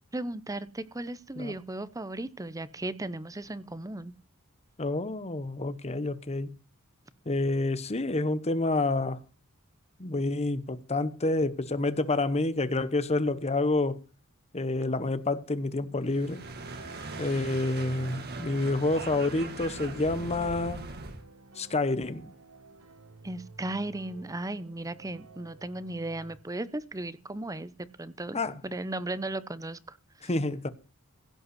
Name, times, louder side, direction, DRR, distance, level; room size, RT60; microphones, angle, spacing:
voice 1, 0.1-4.1 23.2-27.7 28.0-30.0, right 2 dB, 15° right, 0.8 m, -36 dB
voice 2, 4.8-6.6 7.3-9.2 10.0-14.0 14.5-16.4 17.2-20.8 21.6-22.3 28.3-28.6 30.2-30.7, left 2 dB, 30° left, 1.0 m, -28 dB
sound 1, 16.0-21.2, right 3 dB, 45° right, 2.0 m, -40 dB
sound 2, 16.6-26.4, right 4 dB, 85° right, 1.7 m, -52 dB
16.5 x 5.5 x 8.2 m
head